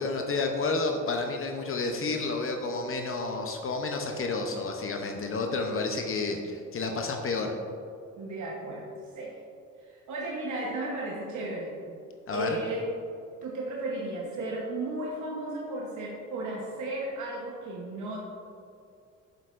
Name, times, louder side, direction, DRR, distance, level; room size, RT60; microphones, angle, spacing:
voice 1, 0.0-7.5 12.3-12.6, left 3 dB, 45° left, 3 dB, 0.7 m, -30 dB
voice 2, 8.2-8.9 9.1-9.3 9.8-11.8 12.3-12.9 13.4-18.2, right 2 dB, 75° right, -3 dB, 1.1 m, -34 dB
7.9 x 6.6 x 2.5 m, 2.4 s
cardioid pair, 90°, 30 cm